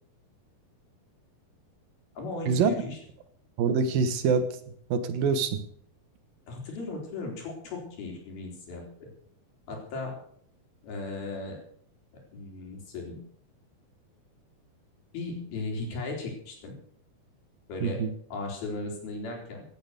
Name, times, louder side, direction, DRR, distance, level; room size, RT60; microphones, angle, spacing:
voice 1, 2.2-3.0 6.5-9.1 9.7-10.2 10.8-11.6 12.3-13.2 15.1-16.7 17.7-18.0 18.3-19.6, left 3 dB, 85° left, 1 dB, 5.9 m, -36 dB
voice 2, 3.6-4.5 4.9-5.6 17.8-18.1, right 5 dB, 75° right, 10 dB, 3.0 m, -25 dB
16.5 x 10.5 x 6.7 m, 0.63 s
omnidirectional pair, 4.2 m